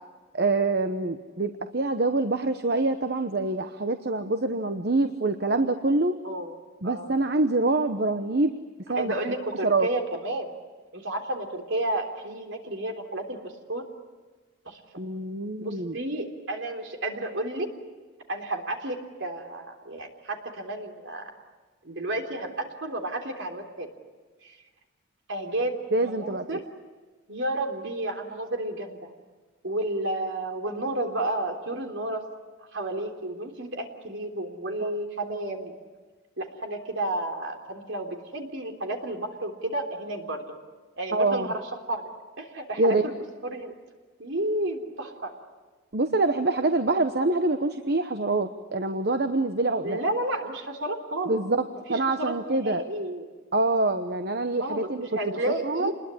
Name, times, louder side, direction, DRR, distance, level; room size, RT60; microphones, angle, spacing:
voice 1, 0.3-6.2 6.8-8.5 8.9-9.1 9.6-9.9 15.0-16.0 25.9-26.6 34.8-34.9 41.1-41.5 42.8-43.0 45.9-50.0 51.3-52.8 53.5-55.9, right 2 dB, 50° right, 8 dB, 1.0 m, -25 dB
voice 2, 6.2-6.6 6.8-7.1 9.0-10.5 10.9-13.8 14.7-14.8 15.6-17.7 18.3-21.3 21.8-23.9 24.4-24.6 25.3-25.8 26.0-26.6 27.3-29.1 29.6-32.3 32.7-35.7 36.4-40.5 41.0-41.6 41.9-42.1 42.4-43.1 43.4-43.7 44.2-45.3 49.8-51.4 51.9-53.3 54.6-54.9 55.2-55.9, right 1 dB, 65° right, 4 dB, 3.4 m, -31 dB
28.0 x 21.0 x 9.9 m, 1.3 s
head